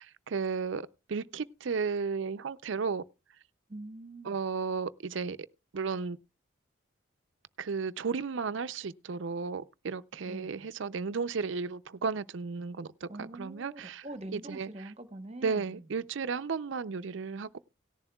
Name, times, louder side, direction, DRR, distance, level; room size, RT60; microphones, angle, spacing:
voice 1, 0.0-3.0 4.2-5.4 5.7-6.2 7.6-14.1 14.3-14.9 15.4-17.6, right 5 dB, 65° right, 0.5 m, -34 dB
voice 2, 3.7-4.4 10.3-10.7 13.1-15.8, right 1 dB, 30° right, 0.9 m, -44 dB
17.5 x 10.5 x 2.3 m
head